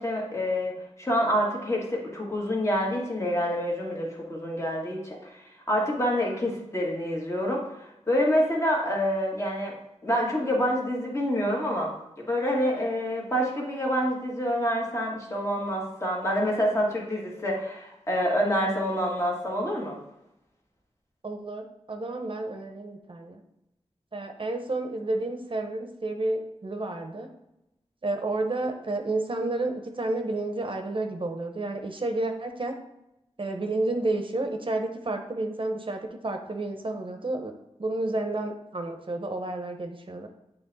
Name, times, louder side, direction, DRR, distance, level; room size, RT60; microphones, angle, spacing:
voice 1, 0.0-9.7 10.0-20.0, equal, 25° left, -3 dB, 1.7 m, -27 dB
voice 2, 21.2-23.4 24.1-27.3 28.0-32.7 33.4-37.5 37.8-40.3, right 2 dB, 50° right, 5 dB, 0.8 m, -31 dB
8.3 x 3.4 x 4.0 m, 0.89 s
wide cardioid pair, 75°, 12 cm